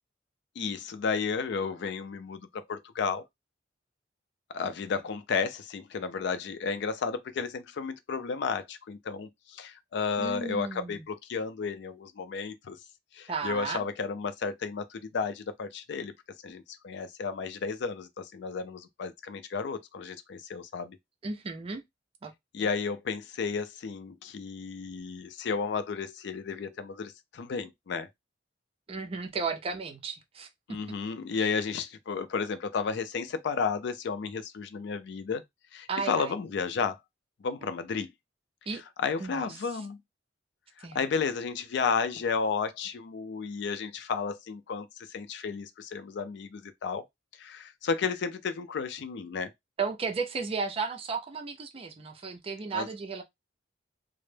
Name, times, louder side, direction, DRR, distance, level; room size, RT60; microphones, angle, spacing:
voice 1, 0.6-3.2 4.5-12.8 13.1-16.1 16.4-21.0 22.5-28.1 30.7-35.4 35.7-37.0 37.4-38.1 39.0-40.0 40.8-47.0 47.4-49.5 52.7-52.9, left 5 dB, 65° left, 0.4 m, -33 dB
voice 2, 10.2-11.0 13.3-13.8 21.2-21.8 22.2-22.3 22.6-22.7 28.9-30.5 35.9-36.3 38.7-38.8 39.2-39.5 40.8-41.0 49.8-53.2, right 4 dB, 30° right, 0.4 m, -34 dB
2.0 x 2.0 x 3.1 m
head